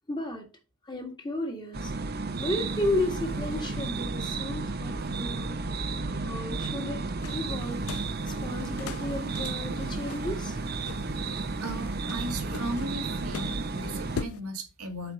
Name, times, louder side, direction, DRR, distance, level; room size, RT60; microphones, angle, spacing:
voice 1, 0.1-0.5 0.8-1.9 2.4-5.6 6.2-7.8 8.2-10.6, left 1 dB, 20° left, 1.8 m, -33 dB
sound 1, 1.7-14.2, right 3 dB, 45° right, 0.8 m, -33 dB
sound 2, 2.2-12.9, left 1 dB, 40° left, 0.7 m, -48 dB
sound 3, 7.2-14.4, left 7 dB, 75° left, 0.4 m, -43 dB
voice 2, 11.6-15.1, right 1 dB, 85° right, 1.9 m, -36 dB
8.0 x 4.7 x 5.1 m
head